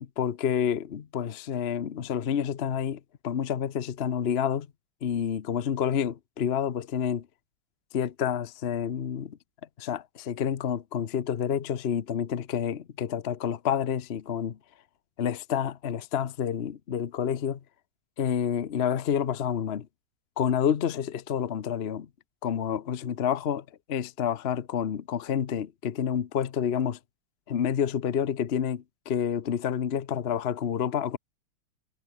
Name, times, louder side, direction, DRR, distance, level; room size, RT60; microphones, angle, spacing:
voice 1, 0.0-4.7 5.0-7.3 7.9-9.4 9.8-14.6 15.2-17.6 18.2-19.9 20.4-22.1 22.4-27.0 27.5-31.2, left 8 dB, 55° left, 0.7 m, -29 dB
omnidirectional pair, 2.4 m